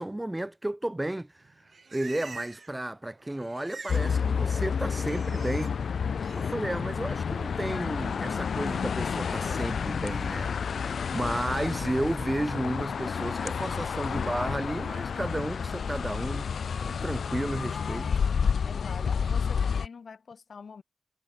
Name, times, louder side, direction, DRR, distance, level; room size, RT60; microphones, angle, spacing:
voice 1, 0.0-1.6 1.9-5.8 6.3-10.5 11.1-18.1, right 1 dB, 10° right, 0.9 m, -33 dB
Livestock farm animals working animals, 1.4-2.8 3.0-4.1 4.4-5.7 6.1-6.5, right 4 dB, 45° right, 1.3 m, -46 dB
sound 1, 3.9-19.9, left 6 dB, 75° left, 0.4 m, -30 dB
voice 2, 18.6-20.8, left 5 dB, 60° left, 6.1 m, -45 dB
wide cardioid pair, 155°, 0 cm